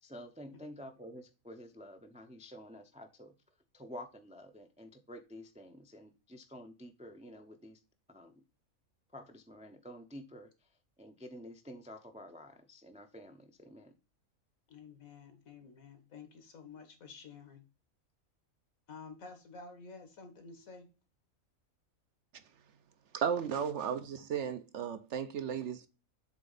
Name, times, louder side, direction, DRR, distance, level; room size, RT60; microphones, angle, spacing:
voice 1, 0.0-3.3 3.7-7.8 8.1-8.4 9.1-10.7 11.0-13.9, equal, 10° right, 0.3 m, -50 dB
voice 2, 14.7-17.6 18.9-20.9, left 4 dB, 80° left, 1.7 m, -51 dB
voice 3, 23.1-25.9, right 7 dB, 65° right, 0.9 m, -35 dB
7.4 x 3.6 x 3.9 m
omnidirectional pair, 1.4 m